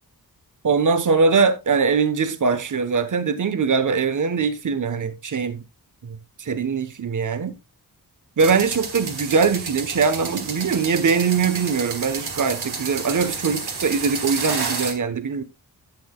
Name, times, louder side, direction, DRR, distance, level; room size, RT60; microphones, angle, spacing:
voice 1, 0.6-5.6 6.0-7.6 8.4-15.4, right 5 dB, 50° right, 1.1 m, -22 dB
sound 1, 8.4-14.9, right 4 dB, 75° right, 2.2 m, -30 dB
12.0 x 8.6 x 2.3 m
wide cardioid pair, 105°, 39 cm